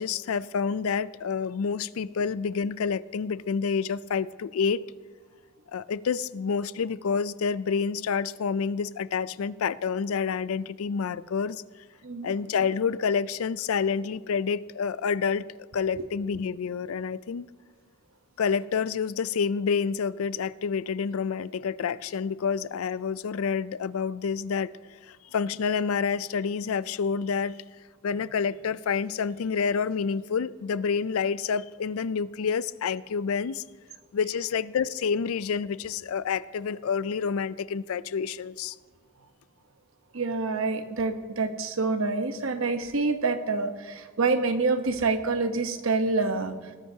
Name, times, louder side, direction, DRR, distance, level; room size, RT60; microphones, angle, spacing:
voice 1, 0.0-4.8 5.7-11.6 12.2-15.5 15.7-17.5 18.4-24.7 25.0-27.6 28.0-33.6 34.1-38.8, left 6 dB, 85° left, 18 dB, 0.4 m, -28 dB
voice 2, 40.1-46.5, right 3 dB, 75° right, 8 dB, 1.0 m, -27 dB
19.0 x 12.5 x 2.8 m, 1.4 s
head